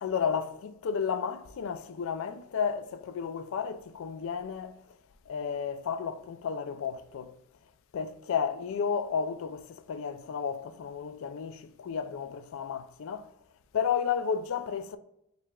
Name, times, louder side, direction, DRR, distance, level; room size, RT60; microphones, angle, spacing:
voice 1, 0.0-4.8 5.3-7.4 7.9-13.3 13.7-15.0, left 6 dB, 60° left, 0.3 m, -32 dB
4.6 x 3.4 x 2.2 m
head